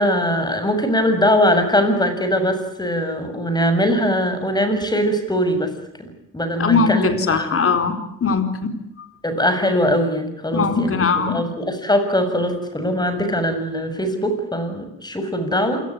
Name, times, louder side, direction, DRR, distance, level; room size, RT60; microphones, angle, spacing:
voice 1, 0.0-5.7 6.0-7.5 9.2-15.8, equal, 15° left, 8 dB, 7.1 m, -21 dB
voice 2, 6.6-8.8 10.5-11.4, left 5 dB, 45° left, 8 dB, 4.6 m, -20 dB
28.0 x 18.5 x 9.8 m, 0.78 s
cardioid pair, 90°, 30 cm